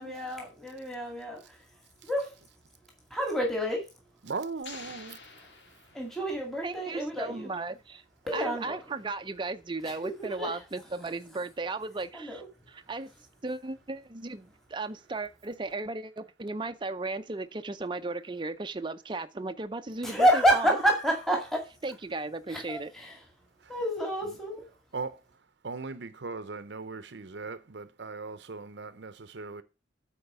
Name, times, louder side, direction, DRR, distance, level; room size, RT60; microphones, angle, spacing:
voice 1, 0.0-1.4 2.0-2.4 3.1-3.9 5.9-7.5 8.3-8.8 9.8-10.6 12.1-12.5 20.0-21.7 22.5-23.2 23.7-24.7, equal, ahead, 2.1 m, -28 dB
voice 2, 4.2-5.2 23.6-23.7 24.9-25.2 25.6-29.6, right 4 dB, 65° right, 0.7 m, -38 dB
sound 1, 4.6-6.5, left 4 dB, 65° left, 2.1 m, -48 dB
voice 3, 6.6-8.0 8.3-12.4 12.7-13.1 13.4-20.8 21.8-22.9, right 3 dB, 25° right, 0.5 m, -36 dB
8.8 x 4.5 x 6.7 m
head